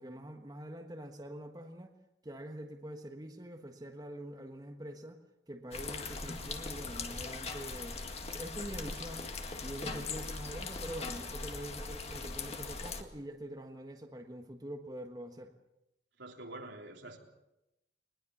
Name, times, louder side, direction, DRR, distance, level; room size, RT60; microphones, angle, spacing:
voice 1, 0.0-1.9 2.2-5.2 5.5-8.0 8.3-9.3 9.6-15.5, right 1 dB, 20° right, 4 dB, 1.3 m, -45 dB
sound 1, 5.7-13.0, left 3 dB, 35° left, 1.9 m, -40 dB
voice 2, 16.2-17.2, right 2 dB, 85° right, 1 dB, 3.6 m, -47 dB
21.5 x 20.5 x 7.2 m, 0.91 s
head